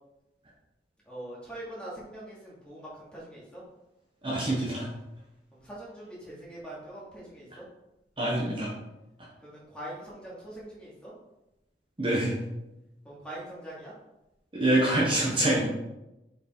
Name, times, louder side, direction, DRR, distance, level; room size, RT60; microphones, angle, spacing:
voice 1, 1.0-3.6 5.5-7.6 9.4-11.1 13.0-13.9, right 1 dB, 5° left, -7 dB, 2.6 m, -43 dB
voice 2, 4.2-4.9 8.2-8.7 12.0-12.4 14.5-15.7, right 1 dB, 30° right, -4 dB, 1.3 m, -25 dB
6.8 x 5.0 x 4.6 m, 0.95 s
head